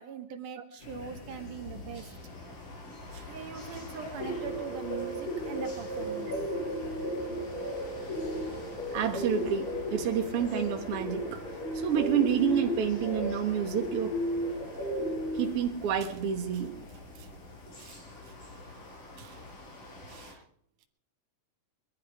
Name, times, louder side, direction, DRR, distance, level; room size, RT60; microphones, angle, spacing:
voice 1, 0.0-2.2 3.2-6.5, right 7 dB, 85° right, 4 dB, 3.2 m, -42 dB
sound 1, 0.8-20.3, left 2 dB, 85° left, 5.9 m, -46 dB
sound 2, 4.2-15.5, equal, 40° left, 7.3 m, -34 dB
voice 2, 8.9-11.4 11.7-14.2 15.3-16.8 17.7-18.0 19.2-19.3 20.1-20.3, right 8 dB, 55° right, 4 dB, 2.1 m, -29 dB
21.5 x 12.5 x 4.9 m, 0.63 s
omnidirectional pair, 3.5 m